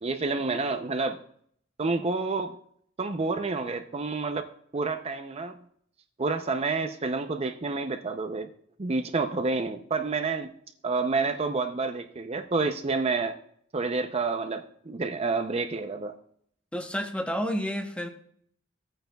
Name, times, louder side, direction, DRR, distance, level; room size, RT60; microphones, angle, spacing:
voice 1, 0.0-1.2 1.8-2.6 3.0-4.5 4.7-5.6 6.2-8.5 8.8-10.5 10.8-13.4 13.7-16.1, right 3 dB, 30° right, 7 dB, 0.5 m, -29 dB
voice 2, 16.7-18.1, equal, 5° left, 5 dB, 0.9 m, -30 dB
16.0 x 8.9 x 2.3 m, 0.64 s
head